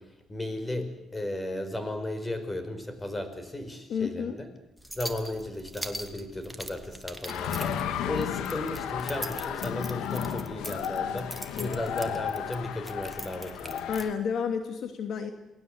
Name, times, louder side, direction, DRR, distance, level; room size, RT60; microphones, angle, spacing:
voice 1, 0.0-4.5 4.9-13.9, left 1 dB, 20° left, 9 dB, 5.5 m, -35 dB
voice 2, 3.9-4.4 11.6-11.7 13.9-15.3, left 6 dB, 70° left, 6 dB, 2.6 m, -31 dB
sound 1, 4.8-14.1, right 1 dB, 5° right, 2.5 m, -42 dB
sound 2, 7.3-14.1, left 9 dB, 90° left, 1.8 m, -33 dB
29.0 x 19.5 x 8.1 m, 0.94 s
cardioid pair, 90°, 0 cm